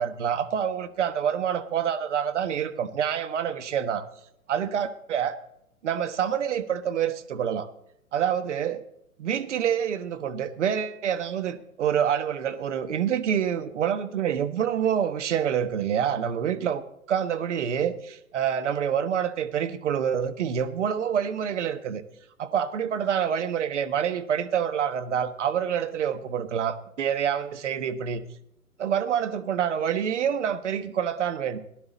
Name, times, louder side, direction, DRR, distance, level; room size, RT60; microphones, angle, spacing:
voice 1, 0.0-4.0 4.5-5.4 5.8-7.7 8.1-8.8 9.2-22.0 22.4-28.2 28.8-31.6, right 8 dB, 55° right, 9 dB, 1.2 m, -27 dB
18.5 x 11.0 x 4.1 m, 0.78 s
figure-of-eight pair, 130°, 44 cm